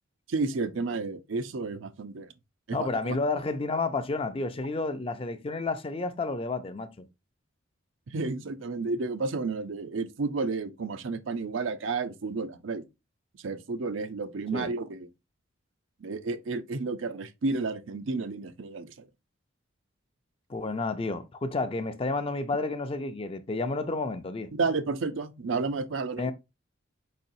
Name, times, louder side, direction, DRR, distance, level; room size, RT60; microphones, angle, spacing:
voice 1, 0.3-2.3 2.7-2.9 8.1-12.8 13.4-15.1 16.0-18.9 24.5-26.3, right 3 dB, 75° right, 0.6 m, -31 dB
voice 2, 2.7-7.1 14.5-14.7 20.5-24.5 26.2-26.3, left 3 dB, 30° left, 0.5 m, -31 dB
4.8 x 4.2 x 2.6 m
head